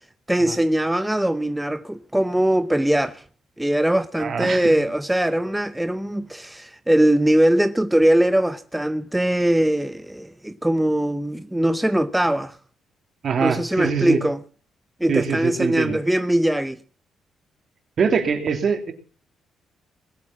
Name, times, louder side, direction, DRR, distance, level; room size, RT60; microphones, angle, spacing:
voice 1, 0.3-3.2 3.6-12.6 13.4-14.4 15.0-16.8, right 1 dB, 5° right, 0.8 m, -21 dB
voice 2, 4.2-4.7 13.2-14.2 15.1-16.0 18.0-18.9, right 6 dB, 50° right, 3.2 m, -23 dB
20.5 x 8.9 x 7.5 m
cardioid pair, 90°, 0 cm